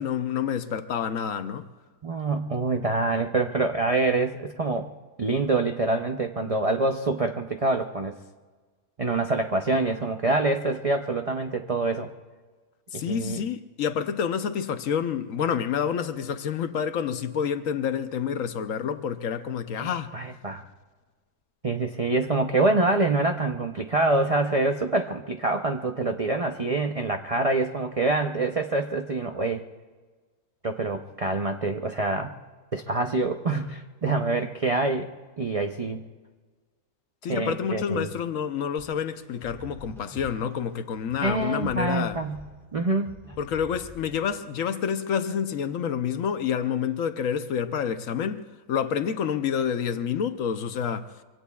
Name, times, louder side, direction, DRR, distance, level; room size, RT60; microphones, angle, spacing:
voice 1, 0.0-1.7 12.9-20.1 37.2-42.2 43.4-51.1, left 7 dB, 65° left, 1.0 m, -28 dB
voice 2, 2.0-4.9 5.2-8.2 9.0-12.1 12.9-13.4 19.8-20.6 21.6-29.6 30.6-32.3 32.7-35.1 35.4-36.0 37.3-38.1 41.2-42.4 42.7-43.1, right 2 dB, 55° right, 0.3 m, -26 dB
sound 1, 38.8-44.6, equal, ahead, 1.5 m, -47 dB
25.5 x 24.5 x 2.3 m
omnidirectional pair, 1.6 m